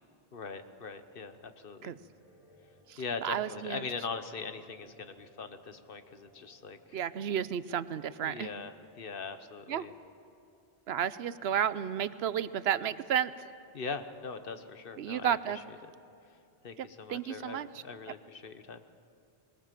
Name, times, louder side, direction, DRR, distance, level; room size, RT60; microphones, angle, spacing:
voice 1, 0.3-1.9 3.0-7.0 8.2-8.7 9.0-9.9 13.7-15.4 16.6-18.8, left 5 dB, 60° left, 10 dB, 1.2 m, -41 dB
sound 1, 2.0-8.3, left 1 dB, ahead, 4.2 m, -62 dB
voice 2, 2.9-3.8 6.9-8.5 9.7-9.9 10.9-13.5 15.0-15.6 16.8-17.8, right 9 dB, 80° right, 15 dB, 0.9 m, -32 dB
21.0 x 20.0 x 7.5 m, 2.7 s
omnidirectional pair, 1.1 m